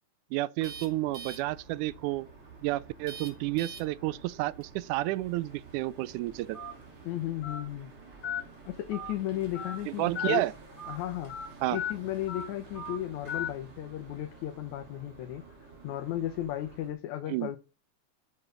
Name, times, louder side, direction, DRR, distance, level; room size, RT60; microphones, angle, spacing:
voice 1, 0.3-2.3 2.6-6.6 9.9-10.5 11.6-11.8 17.3-17.5, right 17 dB, 85° right, 2.1 m, -31 dB
sound 1, 0.6-16.9, right 4 dB, 45° right, 3.2 m, -49 dB
Telephone, 6.5-6.7 7.4-7.6 8.2-8.4 8.9-9.1 9.5-9.8 10.1-10.4 10.8-10.9 11.3-11.5 11.7-11.9 12.3-12.4 12.7-13.0 13.3-13.5, left 7 dB, 40° left, 4.0 m, -35 dB
voice 2, 7.1-7.9 8.7-10.5 10.9-17.6, left 13 dB, 75° left, 2.2 m, -35 dB
8.7 x 6.9 x 3.9 m
omnidirectional pair, 3.5 m